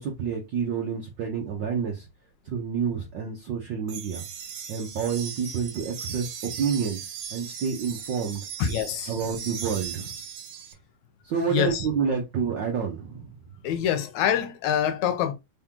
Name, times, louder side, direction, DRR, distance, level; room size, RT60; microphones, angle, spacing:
voice 1, 0.0-2.1 2.4-4.2 4.7-7.0 7.3-8.5 9.1-10.1 11.2-13.4, right 6 dB, 90° right, 1.0 m, -29 dB
sound 1, 3.9-10.7, right 7 dB, 70° right, 1.9 m, -38 dB
voice 2, 8.6-9.1 11.5-11.9 13.6-15.3, left 9 dB, 85° left, 2.1 m, -25 dB
4.6 x 3.6 x 2.9 m
omnidirectional pair, 3.3 m